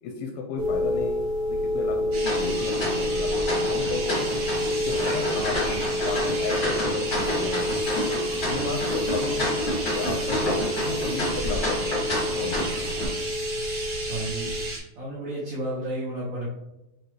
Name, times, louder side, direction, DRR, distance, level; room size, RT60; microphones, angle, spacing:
voice 1, 0.0-4.3 4.7-5.6 6.0-7.6 8.1-9.5 9.9-12.0 12.3-12.9, left 4 dB, 80° left, 1 dB, 2.4 m, -33 dB
sound 1, 0.6-14.7, left 1 dB, 65° right, 2.4 m, -29 dB
sound 2, 2.1-14.8, right 2 dB, 50° right, 1.2 m, -34 dB
sound 3, 2.2-13.0, left 1 dB, 65° left, 0.9 m, -29 dB
voice 2, 14.1-14.5 15.0-16.5, right 1 dB, 85° right, -7 dB, 1.5 m, -32 dB
6.7 x 2.4 x 3.1 m, 0.94 s
omnidirectional pair, 4.5 m